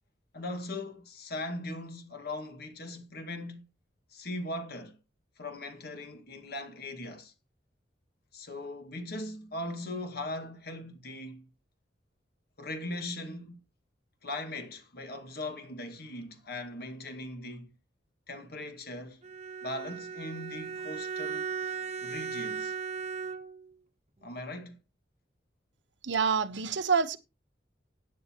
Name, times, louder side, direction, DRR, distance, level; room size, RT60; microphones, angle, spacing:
voice 1, 0.3-3.6 4.1-5.0 5.4-7.3 8.3-11.5 12.6-13.6 14.2-17.7 18.3-19.2 19.6-21.5 22.0-22.7 24.2-24.8, left 1 dB, 60° left, 1.9 m, -39 dB
Bowed string instrument, 19.2-23.7, right 6 dB, 40° right, 1.1 m, -37 dB
voice 2, 26.0-27.2, right 6 dB, 85° right, 1.1 m, -27 dB
15.5 x 9.5 x 3.0 m
head